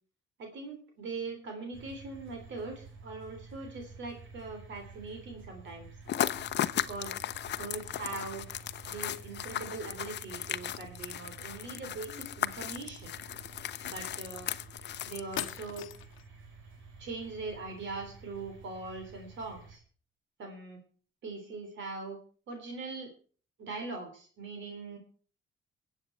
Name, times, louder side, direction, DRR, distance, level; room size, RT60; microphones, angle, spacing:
voice 1, 0.4-5.9 6.7-7.1 7.6-8.4 8.9-13.1 13.8-14.5 15.1-15.9 17.0-19.8 20.4-20.8 21.2-22.2 22.5-23.1 23.6-25.0, right 3 dB, 70° right, 4 dB, 3.5 m, -41 dB
sound 1, 1.7-19.8, right 4 dB, 85° right, 3.1 m, -51 dB
sound 2, 6.1-15.8, left 11 dB, 60° left, 0.7 m, -36 dB
sound 3, 14.8-14.9 15.4-16.3, left 12 dB, 80° left, 0.9 m, -39 dB
24.0 x 8.1 x 4.4 m, 0.42 s
cardioid pair, 90°, 20 cm